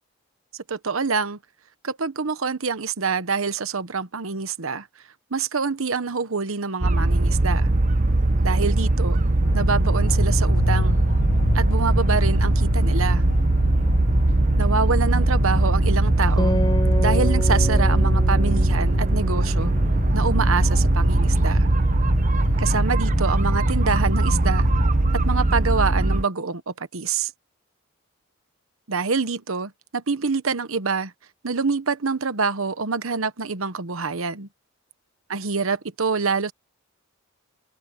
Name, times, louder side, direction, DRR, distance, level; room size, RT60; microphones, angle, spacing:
voice 1, 0.7-1.4 1.8-4.9 5.3-7.7 8.4-9.2 9.5-11.0 11.5-13.2 14.6-16.5 17.0-19.7 20.1-21.7 22.6-24.7 25.2-27.3 28.9-31.1 31.4-34.5 35.3-36.5, right 4 dB, 80° right, 1.1 m, -26 dB
sound 1, 6.8-26.2, right 2 dB, 35° right, 0.9 m, -20 dB
sound 2, 9.4-25.4, left 2 dB, 50° left, 1.0 m, -29 dB
Acoustic guitar, 16.4-20.1, left 1 dB, 20° left, 5.7 m, -30 dB
head